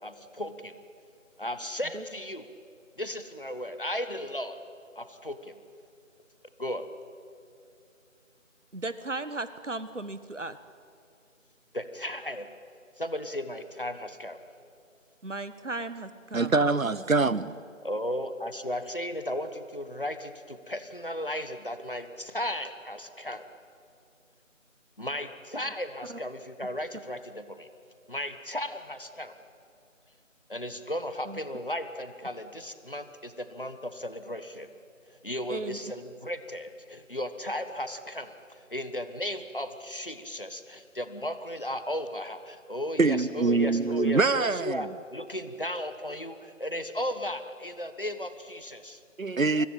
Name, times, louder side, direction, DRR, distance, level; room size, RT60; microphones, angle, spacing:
voice 1, 0.0-0.7 1.4-2.4 3.0-4.6 4.9-5.6 6.6-6.8 11.7-12.5 13.0-14.4 17.8-23.4 25.0-27.7 28.1-29.3 30.5-34.7 35.2-49.0, left 1 dB, 40° left, 1.4 m, -35 dB
voice 2, 8.7-10.6 15.2-16.5 26.0-26.2 31.2-31.4 35.5-35.9, right 2 dB, 65° right, 1.5 m, -36 dB
voice 3, 16.3-17.5 43.0-44.9 49.2-49.7, right 3 dB, 85° right, 1.1 m, -24 dB
24.5 x 21.5 x 8.8 m
figure-of-eight pair, 175°, 39 cm